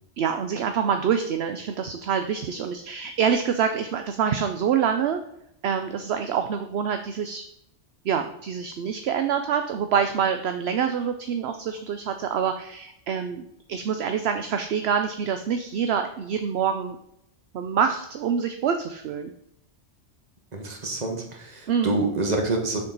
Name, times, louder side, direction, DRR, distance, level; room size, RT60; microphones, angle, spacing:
voice 1, 0.2-5.2 5.6-7.4 8.0-13.4 13.7-17.0 17.5-19.3 21.7-21.9, right 7 dB, 65° right, 7 dB, 0.8 m, -26 dB
voice 2, 20.5-22.8, right 2 dB, 35° right, 2 dB, 1.4 m, -27 dB
6.8 x 6.7 x 4.0 m, 0.76 s
omnidirectional pair, 1.2 m